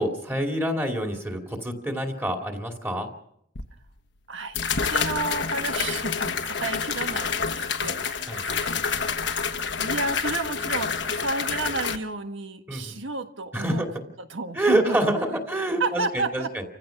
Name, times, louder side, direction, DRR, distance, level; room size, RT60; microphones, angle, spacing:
voice 1, 0.0-3.1 8.3-8.4 12.7-12.8 13.5-13.9 14.5-16.6, right 1 dB, 10° right, 3 dB, 2.6 m, -26 dB
sound 1, 3.5-3.6 4.5-12.0, left 6 dB, 65° left, 1.3 m, -28 dB
voice 2, 4.3-4.6 4.9-7.5 7.8-8.8 9.8-13.9 14.2-15.0 15.3-15.4 15.8-16.5, right 3 dB, 75° right, 7 dB, 1.6 m, -31 dB
29.5 x 15.5 x 5.9 m, 0.72 s
head